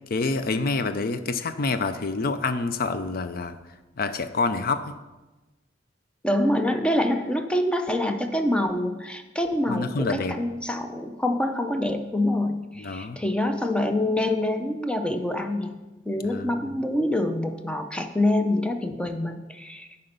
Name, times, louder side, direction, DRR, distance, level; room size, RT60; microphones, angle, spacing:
voice 1, 0.1-3.6 4.0-4.9 9.7-10.4 12.8-13.2 16.2-16.5, left 3 dB, 55° left, 11 dB, 0.5 m, -27 dB
voice 2, 6.2-15.8 16.1-19.9, left 1 dB, 5° left, 6 dB, 0.5 m, -26 dB
9.9 x 4.3 x 5.2 m, 1.1 s
head